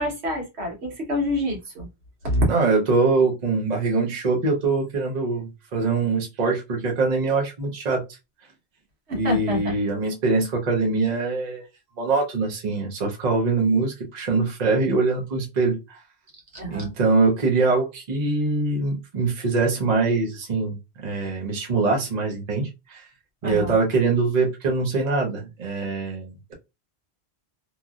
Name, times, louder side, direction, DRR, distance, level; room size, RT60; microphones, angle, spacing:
voice 1, 0.0-1.9 2.2-2.4 9.1-9.8 16.5-16.9 23.4-23.7, equal, 80° right, 1 dB, 1.4 m, -27 dB
voice 2, 2.5-8.0 9.1-11.7 12.0-16.0 16.7-20.8 21.0-23.0 23.4-26.5, right 3 dB, 40° right, 0 dB, 0.9 m, -23 dB
3.0 x 2.6 x 2.4 m, 0.24 s
omnidirectional pair, 1.1 m